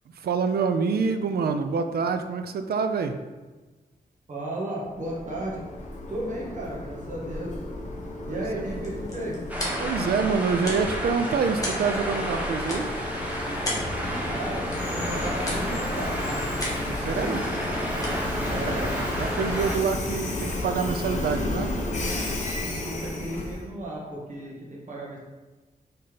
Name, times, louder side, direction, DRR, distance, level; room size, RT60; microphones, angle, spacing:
voice 1, 0.1-3.2 8.3-8.7 9.8-12.9 17.0-17.4 19.2-21.8, right 5 dB, 85° right, 7 dB, 0.5 m, -26 dB
voice 2, 4.3-5.6 6.1-7.6 8.3-9.4 14.3-16.4 16.8-17.4 18.5-19.0 22.6-25.2, right 1 dB, 55° right, -4 dB, 1.8 m, -34 dB
Train, 4.9-23.7, left 1 dB, 50° left, 1.1 m, -33 dB
sound 1, 8.5-19.7, left 1 dB, 20° left, 1.6 m, -39 dB
sound 2, 9.5-19.8, equal, 10° right, 1.0 m, -32 dB
5.7 x 4.2 x 5.1 m, 1.2 s
wide cardioid pair, 175°, 16 cm